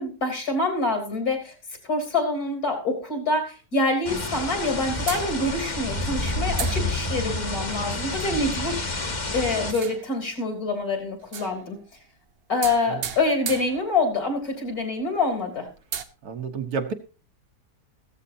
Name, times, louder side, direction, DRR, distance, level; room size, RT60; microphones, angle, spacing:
voice 1, 0.0-1.5 1.8-9.0 9.3-11.8 12.5-15.7, left 2 dB, 60° left, 4 dB, 3.8 m, -26 dB
sound 1, 4.1-9.7, left 2 dB, 30° left, 1.4 m, -29 dB
sound 2, 5.1-5.8 6.6-7.4 8.2-8.5 9.6-10.3 11.2-11.9 12.6-14.3 14.8-14.9 15.2-15.3 15.8-16.0, right 7 dB, 50° right, 0.8 m, -36 dB
voice 2, 16.2-16.9, right 5 dB, 65° right, 6 dB, 1.7 m, -30 dB
15.0 x 14.0 x 2.7 m, 0.32 s
omnidirectional pair, 1.8 m